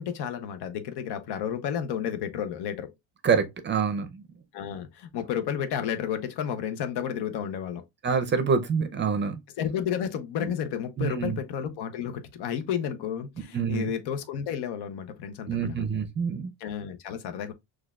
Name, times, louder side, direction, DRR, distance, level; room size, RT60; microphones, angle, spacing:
voice 1, 0.0-2.9 4.5-7.8 9.6-15.8 16.6-17.5, left 8 dB, 65° left, 0.8 m, -32 dB
voice 2, 3.2-4.2 8.0-9.4 10.4-10.5 11.0-11.4 13.5-13.9 15.5-16.5, right 6 dB, 25° right, 0.5 m, -26 dB
6.3 x 2.4 x 2.3 m
cardioid pair, 135°, 43 cm